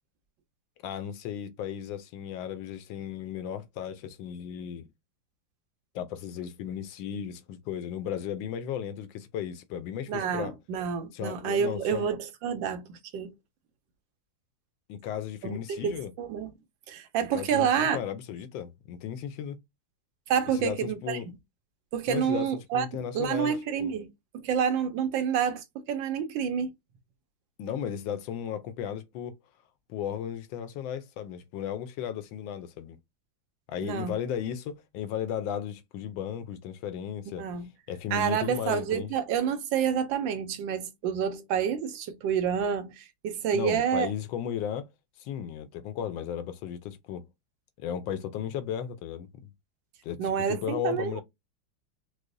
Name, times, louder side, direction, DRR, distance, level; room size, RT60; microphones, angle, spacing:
voice 1, 0.8-4.9 5.9-10.5 11.1-12.1 14.9-16.1 17.3-19.6 20.5-21.3 22.1-23.5 23.8-23.9 27.6-29.3 29.9-33.0 33.7-37.5 37.9-39.1 43.5-44.9 45.2-47.2 47.8-49.5 50.0-51.2, left 9 dB, 90° left, 1.3 m, -35 dB
voice 2, 10.1-13.3 15.4-16.5 16.9-18.0 20.3-21.2 21.9-22.9 23.1-24.1 24.4-26.7 33.8-34.1 37.4-37.7 38.1-44.1 50.2-51.2, right 7 dB, 80° right, 1.3 m, -28 dB
4.7 x 2.0 x 2.5 m
omnidirectional pair, 2.0 m